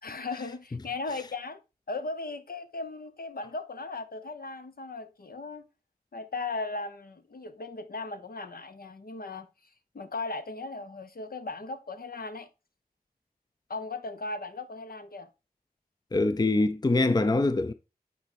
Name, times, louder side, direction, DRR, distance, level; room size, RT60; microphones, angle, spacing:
voice 1, 0.0-1.6 1.9-5.7 6.1-9.5 9.9-12.5 13.7-15.3, left 3 dB, 65° left, 0.9 m, -37 dB
voice 2, 16.1-17.7, left 2 dB, 25° left, 0.5 m, -24 dB
9.3 x 4.3 x 4.2 m
wide cardioid pair, 70°, 16 cm